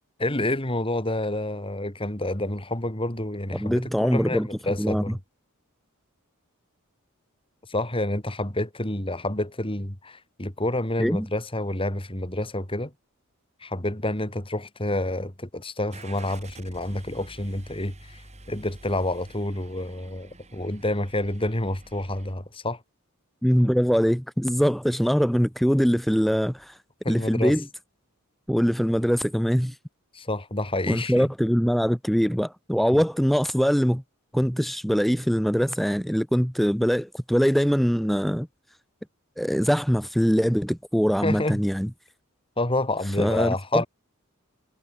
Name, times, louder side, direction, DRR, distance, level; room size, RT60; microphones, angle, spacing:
voice 1, 0.2-5.2 7.7-12.9 13.6-18.2 18.5-22.8 27.0-27.5 30.1-31.3 41.2-41.6 42.6-43.9, left 1 dB, 25° left, 3.6 m, -28 dB
voice 2, 3.5-4.5 4.8-5.2 11.0-11.3 23.4-26.8 27.1-27.7 28.5-29.8 30.9-34.0 34.3-38.5 39.4-41.9 43.0-43.8, equal, ahead, 0.9 m, -23 dB
Car / Engine starting, 15.9-22.3, right 2 dB, 30° right, 7.7 m, -48 dB
head